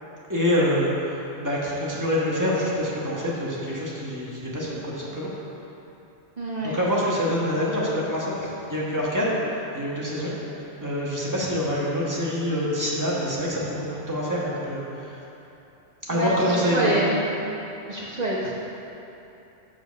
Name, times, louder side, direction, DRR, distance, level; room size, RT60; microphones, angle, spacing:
voice 1, 0.3-5.3 6.6-15.2 16.1-17.0, equal, 15° right, -6 dB, 1.4 m, -26 dB
voice 2, 6.4-6.8 16.1-17.2 17.9-18.5, right 1 dB, 40° right, -5 dB, 0.8 m, -26 dB
7.3 x 6.0 x 5.2 m, 3.0 s
omnidirectional pair, 1.3 m